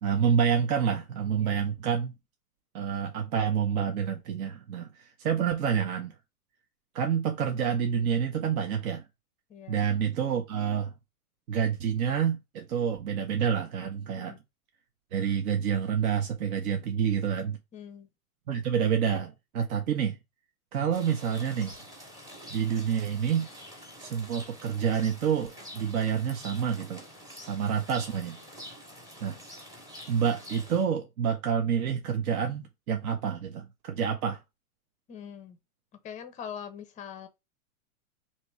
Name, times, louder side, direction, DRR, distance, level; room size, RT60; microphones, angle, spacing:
voice 1, 0.0-2.1 2.7-6.1 6.9-9.0 9.7-10.9 11.5-14.4 15.1-17.6 18.5-20.2 20.7-21.7 22.5-23.5 24.0-27.0 27.4-28.4 29.2-29.4 30.1-34.4, right 7 dB, 70° right, 0.8 m, -28 dB
voice 2, 9.5-9.9 14.2-14.4 17.7-18.1 35.1-35.6 36.0-37.3, left 8 dB, 15° left, 0.5 m, -42 dB
Rain, 20.9-30.8, equal, 10° right, 0.8 m, -47 dB
3.0 x 2.9 x 4.5 m
hypercardioid pair, 125°, 45 cm